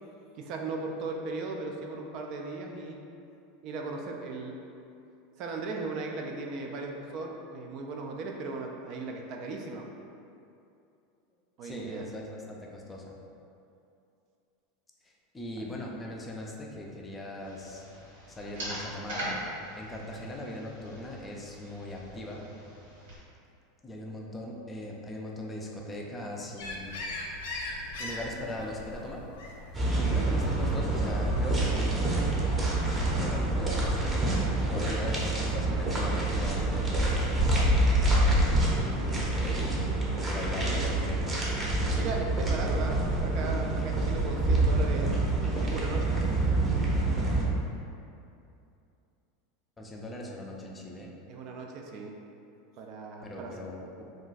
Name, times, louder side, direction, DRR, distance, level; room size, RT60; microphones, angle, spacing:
voice 1, 0.4-3.0 3.6-4.6 5.4-9.9 11.6-12.0 42.0-45.1 45.6-46.1 51.3-52.1 52.8-53.5, right 3 dB, 50° right, 1 dB, 0.3 m, -37 dB
voice 2, 11.6-13.1 15.0-17.8 18.3-19.3 19.7-22.4 23.8-26.9 28.0-29.2 29.9-32.3 32.8-41.2 49.8-51.1 53.2-54.0, left 1 dB, 15° left, -1 dB, 0.4 m, -40 dB
sound 1, 17.4-23.2, right 1 dB, 90° right, 1.3 m, -41 dB
sound 2, 26.6-31.9, left 2 dB, 85° left, 0.5 m, -40 dB
sound 3, 29.7-47.4, right 2 dB, 20° right, 0.7 m, -27 dB
2.4 x 2.2 x 3.9 m, 2.6 s
supercardioid pair, 120°, 0 cm